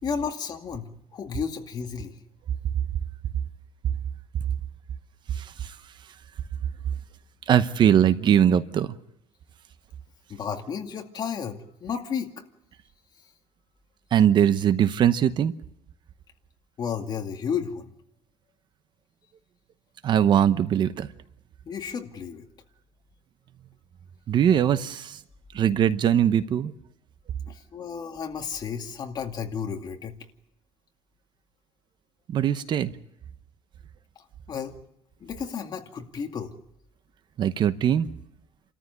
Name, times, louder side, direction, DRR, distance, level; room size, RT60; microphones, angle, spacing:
voice 1, 0.0-2.1 10.3-12.4 16.8-17.9 21.7-22.4 27.5-30.2 34.5-34.7 35.2-36.5, left 6 dB, 40° left, 4 dB, 2.3 m, -32 dB
voice 2, 5.3-5.8 7.5-9.0 14.1-15.5 20.0-21.1 24.3-25.2 25.5-26.7 32.3-32.9 37.4-38.1, right 9 dB, 45° right, 13 dB, 0.9 m, -21 dB
29.0 x 14.0 x 9.5 m, 0.80 s
cardioid pair, 140°, 11 cm